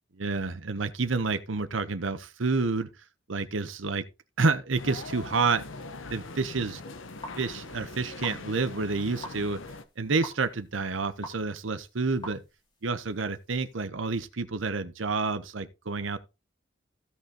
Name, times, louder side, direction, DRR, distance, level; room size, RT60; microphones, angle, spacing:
voice 1, 0.2-2.9 3.3-4.0 4.4-5.6 6.1-6.8 7.4-9.6 10.0-12.4 12.8-16.2, right 4 dB, 80° right, 0.9 m, -29 dB
sound 1, 4.8-9.8, left 3 dB, 80° left, 1.0 m, -42 dB
sound 2, 6.6-13.8, left 1 dB, 25° left, 2.5 m, -48 dB
15.5 x 5.6 x 2.9 m
head